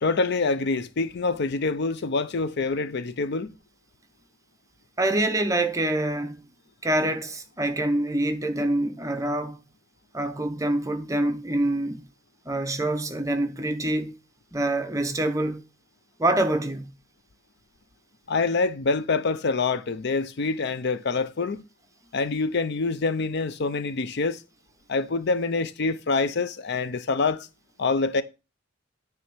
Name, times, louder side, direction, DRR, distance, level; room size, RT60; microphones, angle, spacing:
voice 1, 0.0-3.5 18.3-21.6 22.1-24.4 24.9-27.5 27.8-28.2, left 3 dB, 55° left, 0.6 m, -26 dB
voice 2, 5.0-6.4 6.8-9.6 10.1-12.0 12.4-14.2 14.5-15.6 16.2-16.9, right 1 dB, 15° right, 0.8 m, -26 dB
9.6 x 3.4 x 6.1 m
head